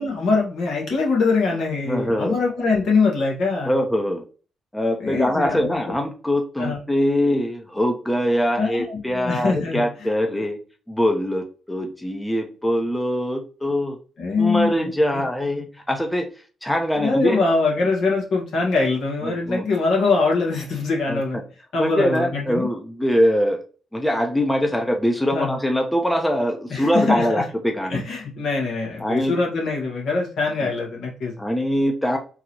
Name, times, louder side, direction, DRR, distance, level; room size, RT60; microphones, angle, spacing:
voice 1, 0.0-3.7 5.0-5.9 6.6-6.8 8.6-9.9 14.2-14.9 15.5-15.6 17.0-21.4 21.7-22.7 25.3-25.6 26.7-27.4 27.9-31.3, left 4 dB, 70° left, -2 dB, 1.8 m, -23 dB
voice 2, 1.9-2.4 3.7-4.2 4.7-10.6 10.9-14.0 14.4-16.3 16.6-17.4 19.2-19.6 21.1-21.2 21.8-23.6 23.9-28.0 29.0-29.3 30.6-30.7 31.4-32.2, equal, 10° left, 3 dB, 0.9 m, -23 dB
3.8 x 2.7 x 3.0 m, 0.38 s
supercardioid pair, 50°, 0 cm